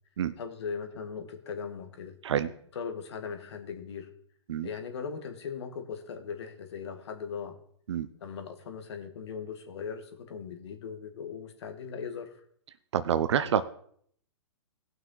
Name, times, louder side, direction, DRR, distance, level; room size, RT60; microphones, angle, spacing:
voice 1, 0.4-2.2 2.7-4.1 4.6-7.6 8.2-12.4, left 6 dB, 60° left, 6 dB, 1.7 m, -39 dB
voice 2, 12.9-13.6, right 9 dB, 65° right, 12 dB, 0.6 m, -27 dB
18.0 x 6.0 x 3.9 m, 0.62 s
hypercardioid pair, 130°, 16 cm